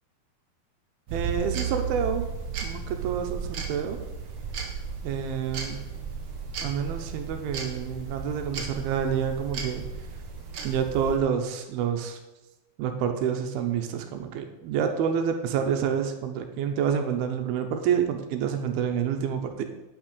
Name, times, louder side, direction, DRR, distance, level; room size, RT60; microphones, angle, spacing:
sound 1, 1.1-11.2, right 6 dB, 70° right, 1.3 m, -34 dB
voice 1, 1.1-2.3 2.6-4.0 5.0-5.8 6.6-9.8 10.6-12.2 12.8-19.6, right 7 dB, 85° right, 6 dB, 2.7 m, -28 dB
8.9 x 6.2 x 6.7 m, 1.0 s
omnidirectional pair, 4.4 m